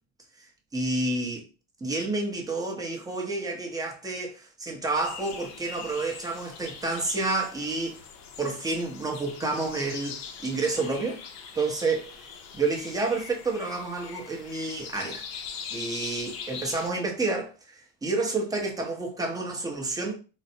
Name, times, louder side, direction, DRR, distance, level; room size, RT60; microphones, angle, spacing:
voice 1, 0.4-1.4 1.8-8.0 8.4-11.2 11.5-12.3 12.6-15.3 15.7-20.2, right 3 dB, 10° right, 0.7 m, -29 dB
sound 1, 4.9-16.9, left 6 dB, 70° left, 0.7 m, -42 dB
3.9 x 2.1 x 2.7 m
cardioid pair, 135°, 35 cm